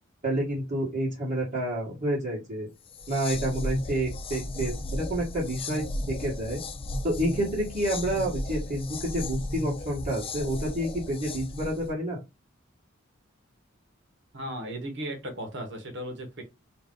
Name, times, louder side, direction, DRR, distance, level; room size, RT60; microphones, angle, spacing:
voice 1, 0.2-2.7 3.1-6.6 7.0-12.2, right 1 dB, 40° right, -7 dB, 1.5 m, -29 dB
sound 1, 2.9-11.9, left 2 dB, 25° left, 0.4 m, -35 dB
voice 2, 14.3-16.4, equal, 60° right, 3 dB, 1.3 m, -36 dB
3.1 x 2.5 x 3.7 m, 0.23 s
head